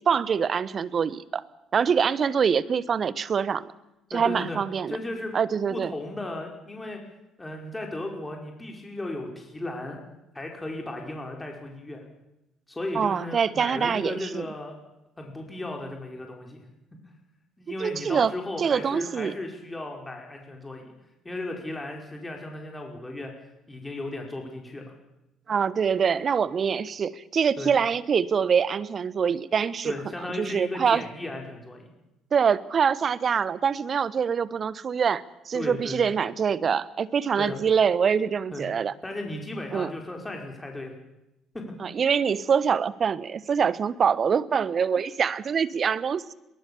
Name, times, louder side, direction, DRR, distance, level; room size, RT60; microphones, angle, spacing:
voice 1, 0.1-1.4 1.7-3.7 4.1-5.0 5.3-5.9 12.9-14.5 17.8-18.3 18.6-19.3 25.5-29.9 30.4-31.0 32.3-38.9 39.7-39.9 41.8-46.3, right 6 dB, 40° right, 18 dB, 1.1 m, -24 dB
voice 2, 4.1-4.6 4.9-5.3 5.7-7.0 7.4-10.0 10.3-12.0 12.7-14.8 15.2-16.6 17.6-20.9 21.3-23.3 23.7-24.9 27.6-27.7 29.8-31.9 35.5-36.1 37.4-37.6 38.5-38.7 39.0-40.9 41.5-41.7 44.5-44.6, left 1 dB, 15° left, 1 dB, 5.1 m, -35 dB
22.5 x 21.0 x 7.1 m, 0.91 s
figure-of-eight pair, 50°, 0 cm